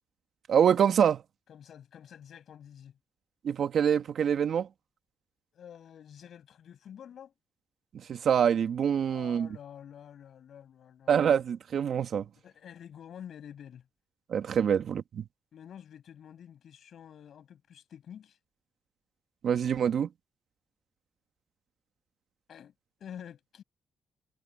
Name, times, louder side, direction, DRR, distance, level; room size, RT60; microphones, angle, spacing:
voice 1, 0.5-1.2 3.4-4.7 8.1-9.5 11.1-12.3 14.3-15.2 19.4-20.1, right 8 dB, 60° right, 1.9 m, -25 dB
voice 2, 1.5-3.0 5.5-7.3 9.0-11.1 12.4-13.9 14.7-14.8 15.5-18.4 22.5-22.7 23.0-23.6, left 9 dB, 65° left, 7.4 m, -48 dB
cardioid pair, 90°, 0 cm